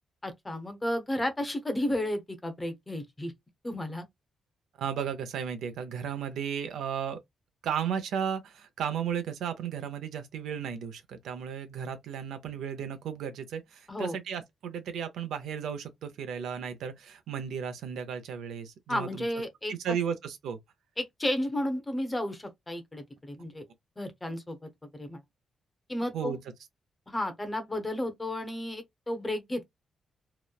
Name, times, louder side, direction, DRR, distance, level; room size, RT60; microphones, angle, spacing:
voice 1, 0.2-3.3 3.6-4.0 13.9-14.2 18.9-19.7 21.0-23.6 24.0-25.2 25.9-26.4 27.1-29.6, left 1 dB, 20° left, 0.7 m, -33 dB
voice 2, 4.8-7.2 7.6-19.3 19.7-20.6 26.1-26.4, right 8 dB, 90° right, 0.5 m, -34 dB
2.9 x 2.0 x 2.2 m
cardioid pair, 105°, 0 cm